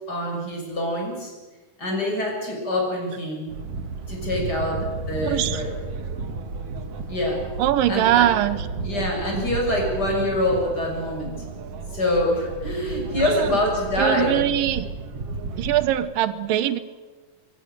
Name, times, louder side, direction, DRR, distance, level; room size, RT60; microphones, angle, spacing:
voice 1, 0.1-1.3 1.8-3.6 4.1-5.7 7.1-7.4 7.9-8.3 8.8-11.4 11.9-14.4, left 1 dB, 25° left, 0 dB, 7.0 m, -25 dB
sound 1, 3.5-15.9, right 4 dB, 50° right, 2.5 m, -33 dB
voice 2, 5.2-5.6 7.6-8.6 13.2-13.5 14.0-14.9 15.6-16.8, right 12 dB, 85° right, 14 dB, 2.7 m, -22 dB
25.0 x 23.5 x 6.8 m, 1.2 s
omnidirectional pair, 3.9 m